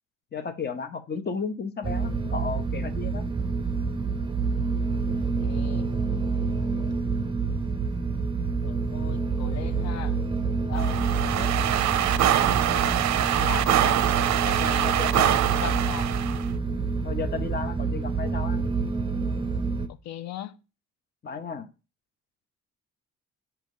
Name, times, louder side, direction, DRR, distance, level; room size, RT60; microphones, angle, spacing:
voice 1, 0.3-3.2 10.7-11.0 14.5-15.4 17.0-18.7 21.2-21.7, left 5 dB, 35° left, 0.9 m, -34 dB
sound 1, 1.8-19.9, right 4 dB, 15° right, 0.7 m, -27 dB
voice 2, 5.4-5.9 6.5-6.9 8.6-10.2 10.7-11.6 11.9-14.1 14.3-16.1 19.6-20.6, left 10 dB, 65° left, 0.6 m, -39 dB
sound 2, 10.8-16.5, right 12 dB, 65° right, 0.5 m, -24 dB
7.3 x 3.0 x 5.4 m
cardioid pair, 90°, 30 cm